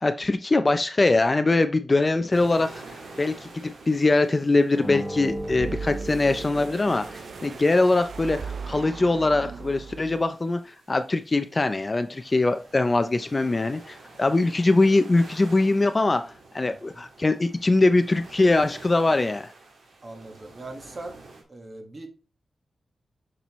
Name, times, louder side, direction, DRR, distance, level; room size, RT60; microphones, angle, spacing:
voice 1, 0.0-2.8 3.2-10.6 10.9-16.2 16.5-19.5, left 2 dB, 25° left, 0.4 m, -22 dB
sound 1, 2.3-21.4, right 3 dB, 80° right, 1.9 m, -48 dB
sound 2, 4.7-7.4, equal, ahead, 0.9 m, -35 dB
sound 3, 5.3-10.4, right 5 dB, 60° right, 0.4 m, -38 dB
voice 2, 20.0-21.2 21.5-22.1, right 2 dB, 35° right, 1.4 m, -40 dB
7.0 x 6.0 x 3.1 m
wide cardioid pair, 155°, 0 cm